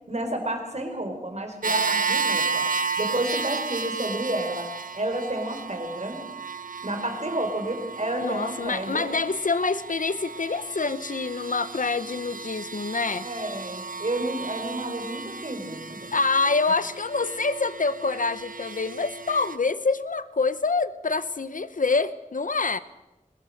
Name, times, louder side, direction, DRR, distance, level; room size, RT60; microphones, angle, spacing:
voice 1, 0.1-4.7 4.9-6.3 6.8-9.2 13.2-16.1, right 1 dB, 55° right, 5 dB, 4.5 m, -31 dB
sound 1, 1.6-19.6, right 4 dB, 90° right, 0.9 m, -33 dB
voice 2, 8.2-13.3 16.1-22.8, left 4 dB, 75° left, 14 dB, 0.9 m, -26 dB
23.0 x 20.5 x 6.6 m, 0.99 s
wide cardioid pair, 55°, 14 cm